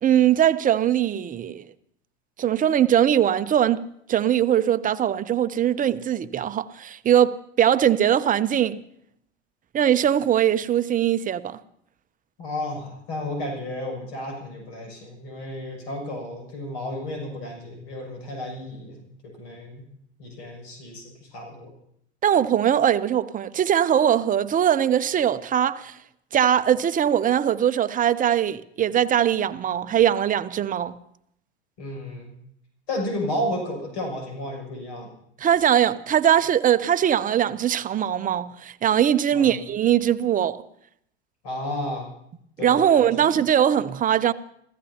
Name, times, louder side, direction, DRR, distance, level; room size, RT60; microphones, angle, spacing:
voice 1, 0.0-1.7 2.4-8.8 9.7-11.6 22.2-26.0 26.3-31.0 35.4-40.6 42.6-44.3, right 10 dB, 25° right, 0.7 m, -21 dB
voice 2, 12.4-19.0 19.4-19.8 20.2-21.7 31.8-32.3 32.9-35.1 39.3-39.6 41.4-42.1 42.6-43.3, left 1 dB, 65° left, 7.0 m, -32 dB
28.0 x 16.0 x 2.9 m
hypercardioid pair, 85°, 34 cm